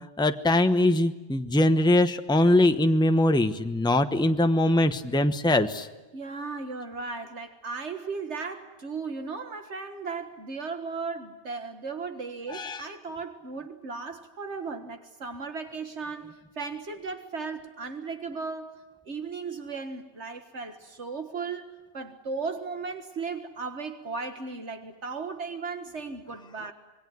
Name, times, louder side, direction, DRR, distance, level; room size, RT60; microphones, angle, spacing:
voice 1, 0.2-5.9 12.5-12.8, left 1 dB, 5° left, 8 dB, 1.0 m, -22 dB
voice 2, 6.1-18.7 19.1-21.7 21.9-26.7, right 4 dB, 75° right, 7 dB, 1.9 m, -36 dB
26.5 x 21.5 x 9.4 m, 1.1 s
omnidirectional pair, 1.2 m